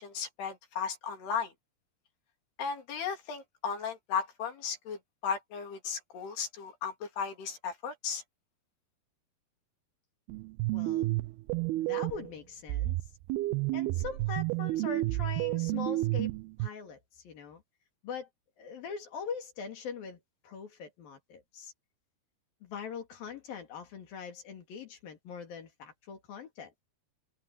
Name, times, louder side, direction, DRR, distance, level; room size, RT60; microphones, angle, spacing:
voice 1, 0.0-1.5 2.6-8.2, left 6 dB, 80° left, 5.4 m, -35 dB
sound 1, 10.3-12.3 12.7-16.7, right 19 dB, 80° right, 2.6 m, -31 dB
voice 2, 10.7-11.1 11.8-13.0 13.7-16.3 16.6-17.6 18.0-18.3 18.6-21.7 22.6-26.7, left 6 dB, 65° left, 4.4 m, -42 dB
open air
omnidirectional pair, 4.6 m